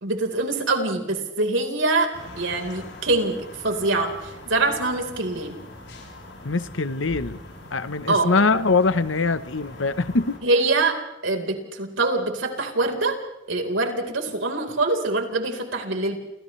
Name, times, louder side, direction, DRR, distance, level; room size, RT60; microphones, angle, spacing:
voice 1, 0.0-2.1 2.4-5.6 8.1-8.3 10.4-11.0 11.2-13.2 13.5-16.2, right 2 dB, 85° right, 3 dB, 4.4 m, -24 dB
sound 1, 2.1-10.4, left 1 dB, 70° left, 7.8 m, -42 dB
voice 2, 6.4-7.4 7.7-10.4, left 3 dB, 90° left, 13 dB, 1.0 m, -23 dB
29.0 x 29.0 x 3.3 m, 0.93 s
head